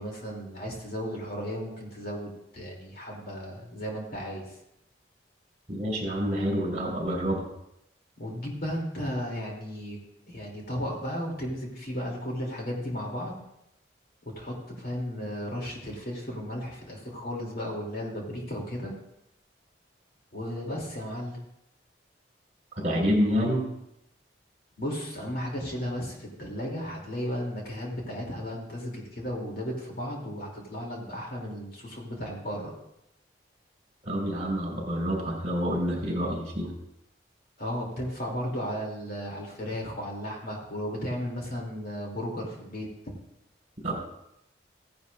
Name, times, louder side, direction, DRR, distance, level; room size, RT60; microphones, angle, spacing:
voice 1, 0.0-4.5 8.2-10.0 10.3-13.4 14.2-18.9 20.3-21.4 24.8-32.7 37.6-42.9, equal, 55° left, -2 dB, 2.8 m, -34 dB
voice 2, 5.7-7.5 22.7-23.6 34.0-36.7 43.8-43.9, equal, 40° right, -3 dB, 4.5 m, -27 dB
16.5 x 10.5 x 2.5 m, 0.82 s
head